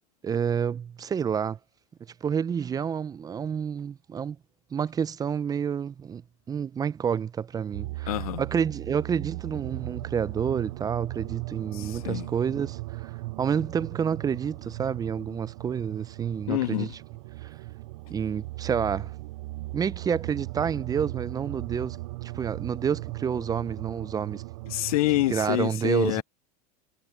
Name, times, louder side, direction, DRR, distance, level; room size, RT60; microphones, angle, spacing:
voice 1, 0.2-1.6 2.2-4.4 4.7-6.2 6.5-13.1 13.4-16.9 17.4-17.6 18.1-19.1 19.7-24.4 25.3-26.2, right 7 dB, 20° right, 0.5 m, -29 dB
sound 1, 7.7-25.6, right 20 dB, 70° right, 0.4 m, -38 dB
voice 2, 8.1-8.4 11.7-12.3 16.5-16.9 24.7-26.2, left 17 dB, 80° left, 0.6 m, -27 dB
supercardioid pair, 115°, 18 cm